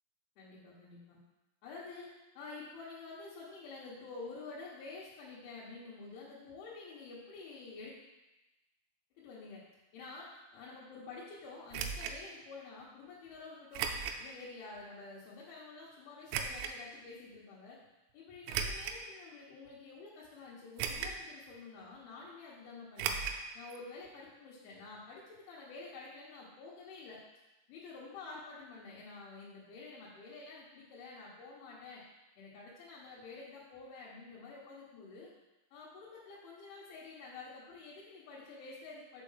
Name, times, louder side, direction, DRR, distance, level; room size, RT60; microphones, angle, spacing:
voice 1, 0.4-1.2 1.6-2.1 2.4-7.9 9.2-9.6 9.9-13.9 14.2-17.8 18.1-23.2 23.6-27.2 27.7-32.0 32.4-35.3 35.7-39.2, left 3 dB, 85° left, -7 dB, 3.6 m, -49 dB
sound 1, 11.7-12.2 13.7-14.2 14.8-14.9 16.3-16.7 18.4-19.0 19.7-19.8 20.8-21.3 21.5-21.6 23.0-23.4 23.7-23.8 24.1-24.2, right 6 dB, 85° right, 2.6 m, -36 dB
6.7 x 4.6 x 5.6 m, 1.0 s
omnidirectional pair, 5.4 m